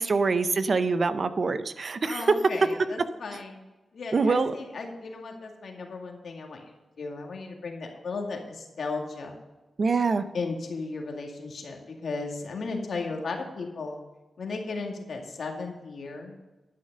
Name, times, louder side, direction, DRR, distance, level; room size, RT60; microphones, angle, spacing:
voice 1, 0.0-2.3 4.1-4.5 9.8-10.2, right 4 dB, 55° right, 12 dB, 0.7 m, -24 dB
voice 2, 2.0-3.5 3.9-9.3 10.3-14.0 14.4-16.4, left 3 dB, 70° left, 2 dB, 2.1 m, -35 dB
11.5 x 6.6 x 6.7 m, 1.1 s
cardioid pair, 65°, 0 cm